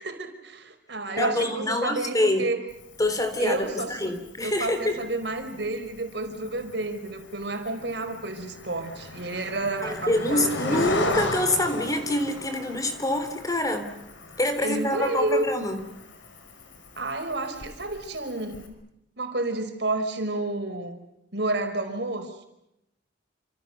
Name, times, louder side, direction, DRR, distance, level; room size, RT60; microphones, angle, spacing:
voice 1, 0.0-2.6 3.4-4.1 4.4-11.3 14.6-15.5 17.0-18.8 19.2-21.0 21.3-22.5, right 2 dB, 65° right, 6 dB, 4.9 m, -30 dB
voice 2, 1.2-2.5 3.0-5.0 9.8-14.0 14.4-15.8, left 1 dB, 20° left, 8 dB, 3.6 m, -26 dB
Cricket, 2.7-18.7, left 2 dB, 90° left, 5.6 m, -37 dB
29.0 x 27.5 x 6.7 m, 0.82 s
head